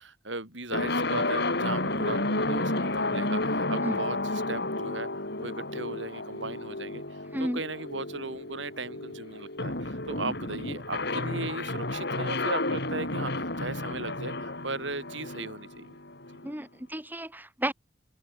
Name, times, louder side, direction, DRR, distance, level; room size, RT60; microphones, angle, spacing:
voice 1, 0.0-5.1 5.4-16.0, right 3 dB, 75° right, 8.0 m, -37 dB
sound 1, 0.7-16.5, left 2 dB, 60° left, 5.3 m, -31 dB
voice 2, 16.4-17.7, right 1 dB, 10° right, 5.1 m, -32 dB
open air
head